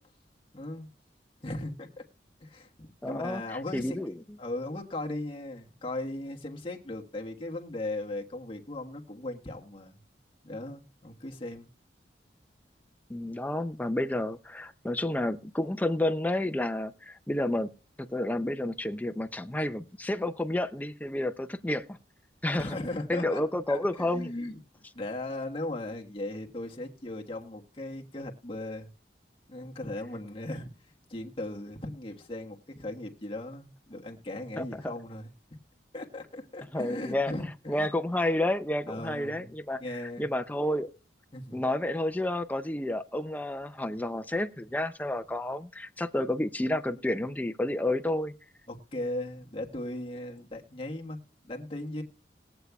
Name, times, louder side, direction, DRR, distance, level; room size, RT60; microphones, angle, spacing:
voice 1, 0.5-0.9 1.4-2.0 2.4-4.0 4.4-10.0 10.4-11.7 22.6-24.6 24.9-28.9 29.5-30.7 31.1-35.3 35.9-37.9 38.9-39.5 39.8-40.3 41.3-41.6 48.7-51.2 51.4-52.0, left 1 dB, 30° left, 1.4 m, -37 dB
voice 2, 3.0-4.1 13.1-17.7 18.0-22.0 22.4-24.3 34.6-34.9 36.7-40.9 41.5-48.3, left 1 dB, 10° left, 0.5 m, -30 dB
20.5 x 8.0 x 2.3 m
head